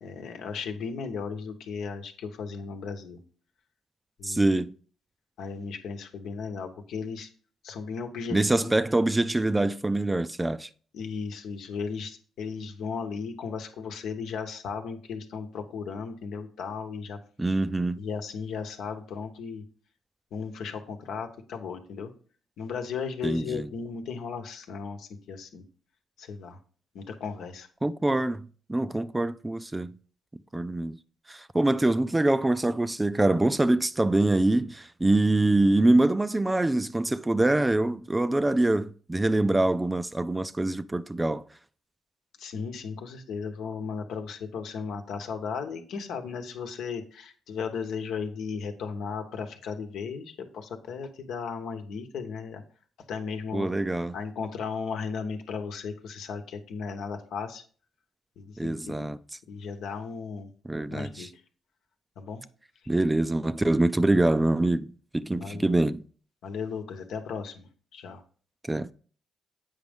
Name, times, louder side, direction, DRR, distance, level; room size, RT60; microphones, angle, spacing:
voice 1, 0.0-3.2 4.2-4.6 5.4-7.3 7.6-8.7 10.9-17.2 18.0-19.6 20.3-22.1 22.6-25.6 26.2-26.6 26.9-27.7 42.4-52.6 53.1-53.7 54.1-57.6 58.4-59.0 59.5-60.5 60.9-61.4 62.2-62.4 65.4-65.6 66.4-68.2, left 5 dB, 75° left, 1.1 m, -36 dB
voice 2, 4.2-4.7 8.3-10.7 17.4-18.0 23.2-23.7 27.8-30.0 30.5-31.0 31.3-41.4 53.5-54.2 58.6-59.2 60.6-61.3 62.9-66.0 68.7-68.9, right 2 dB, 15° right, 0.4 m, -24 dB
8.1 x 5.2 x 3.5 m
supercardioid pair, 55°, 0 cm